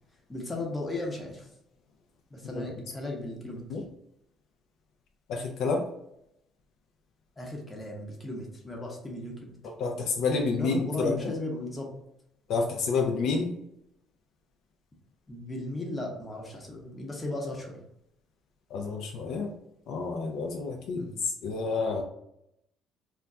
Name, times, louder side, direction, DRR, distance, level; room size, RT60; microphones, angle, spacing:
voice 1, 0.3-1.5 2.3-3.6 7.4-9.6 10.6-11.9 15.3-17.8 21.0-21.2, left 1 dB, 20° left, -1 dB, 0.8 m, -36 dB
voice 2, 5.3-5.8 9.8-11.3 12.5-13.5 18.7-19.5 19.9-22.0, left 4 dB, 75° left, 1 dB, 0.4 m, -29 dB
2.3 x 2.2 x 3.7 m, 0.79 s
cardioid pair, 100°, 0 cm